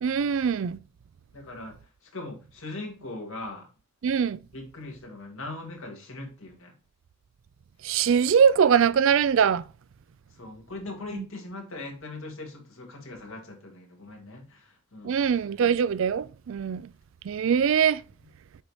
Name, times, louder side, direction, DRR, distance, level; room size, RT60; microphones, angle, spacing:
voice 1, 0.0-0.8 4.0-4.4 7.8-9.6 11.1-11.2 15.0-16.9 17.3-18.0, right 7 dB, 60° right, 0.3 m, -22 dB
voice 2, 1.3-3.7 4.5-6.7 10.3-15.3, left 2 dB, 70° left, 2.1 m, -40 dB
6.7 x 5.5 x 3.1 m
head